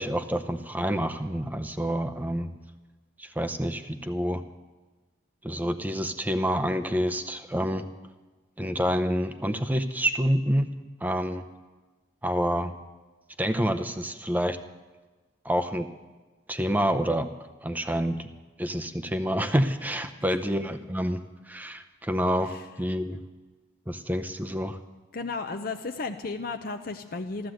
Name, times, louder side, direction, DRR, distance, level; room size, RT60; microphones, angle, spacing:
voice 1, 0.0-2.5 3.2-4.4 5.4-7.8 8.6-10.7 11.0-11.4 12.2-12.7 13.4-14.6 15.4-15.9 16.5-17.3 17.6-18.3 18.6-21.2 21.5-23.2 23.9-24.8, equal, 10° right, 8 dB, 0.6 m, -28 dB
voice 2, 25.1-27.5, left 3 dB, 45° left, 6 dB, 0.6 m, -34 dB
13.5 x 13.5 x 7.8 m, 1.3 s
head